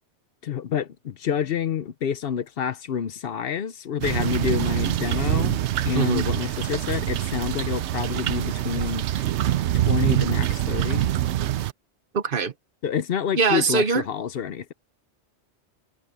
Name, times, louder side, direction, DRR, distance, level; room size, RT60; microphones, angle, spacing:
voice 1, 0.4-5.6 5.8-9.3 9.7-11.1 12.8-14.7, left 8 dB, 65° left, 0.9 m, -28 dB
sound 1, 4.0-11.7, right 13 dB, 85° right, 0.9 m, -25 dB
voice 2, 12.1-12.5 13.3-14.0, right 5 dB, 55° right, 1.0 m, -22 dB
omnidirectional pair, 1.1 m